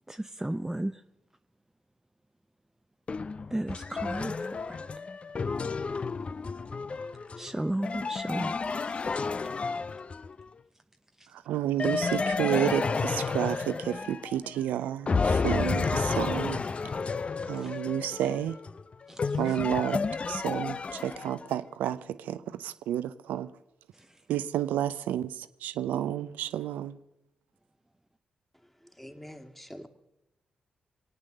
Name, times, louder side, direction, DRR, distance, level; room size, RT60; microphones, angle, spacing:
voice 1, 0.1-0.9 3.5-4.8 7.4-8.6 8.9-9.2 19.1-19.4, right 1 dB, 15° right, 0.6 m, -34 dB
sound 1, 3.1-10.5 11.8-14.6 15.1-21.5, left 4 dB, 45° left, 0.5 m, -31 dB
voice 2, 11.5-16.6 17.5-18.6 19.4-20.0 20.3-23.5 24.3-27.0, right 11 dB, 80° right, 0.6 m, -31 dB
voice 3, 28.6-29.9, equal, 5° left, 1.9 m, -46 dB
23.0 x 9.0 x 6.7 m
hypercardioid pair, 40°, 3 cm